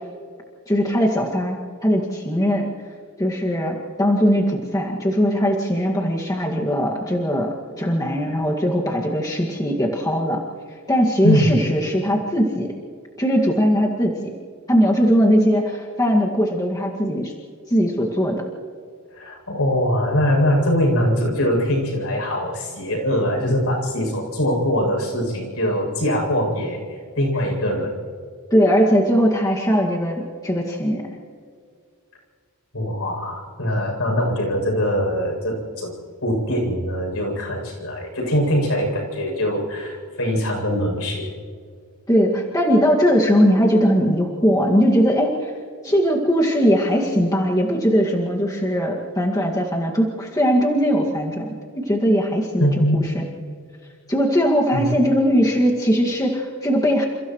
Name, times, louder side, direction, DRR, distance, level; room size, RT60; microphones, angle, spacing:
voice 1, 0.7-2.7 3.2-10.4 10.9-12.7 13.2-14.3 14.7-17.3 17.7-18.4 28.5-31.1 42.1-45.5 45.8-51.5 51.8-53.3 54.1-57.1, equal, 15° left, -2 dB, 2.1 m, -20 dB
voice 2, 19.1-28.0 32.7-35.9 36.2-41.3 52.6-53.1 54.7-54.8, equal, 70° left, 0 dB, 7.8 m, -22 dB
29.5 x 29.0 x 3.2 m, 2.1 s
head